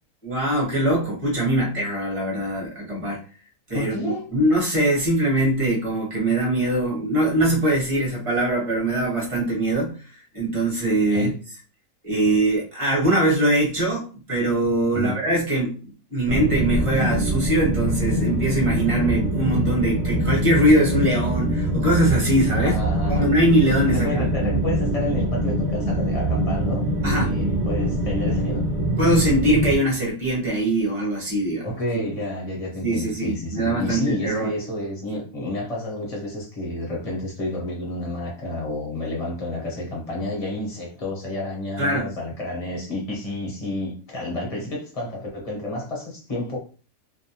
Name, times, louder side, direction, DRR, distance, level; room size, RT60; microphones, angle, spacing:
voice 1, 0.2-3.2 3.7-9.9 10.3-11.3 12.0-15.8 16.1-22.8 23.1-24.2 27.0-27.3 29.0-31.7 32.8-34.5 41.8-42.1, right 1 dB, 25° right, 1.0 m, -22 dB
voice 2, 3.7-4.3 11.1-11.4 14.9-15.2 22.6-23.3 23.9-28.7 31.6-46.6, left 1 dB, 30° left, 0.8 m, -30 dB
sound 1, 16.3-29.7, right 1 dB, 85° right, 0.3 m, -24 dB
2.5 x 2.1 x 2.8 m
omnidirectional pair, 1.5 m